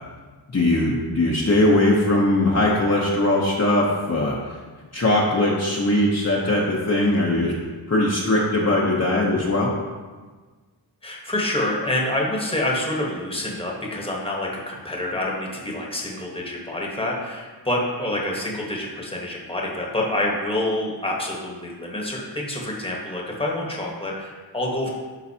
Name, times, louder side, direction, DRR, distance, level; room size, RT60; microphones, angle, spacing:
voice 1, 0.5-4.4 4.9-7.5 7.9-9.7, left 1 dB, 40° left, -4 dB, 0.9 m, -20 dB
voice 2, 11.0-24.9, left 1 dB, 15° left, -2 dB, 1.2 m, -27 dB
11.0 x 3.9 x 2.8 m, 1.4 s
wide cardioid pair, 90°, 42 cm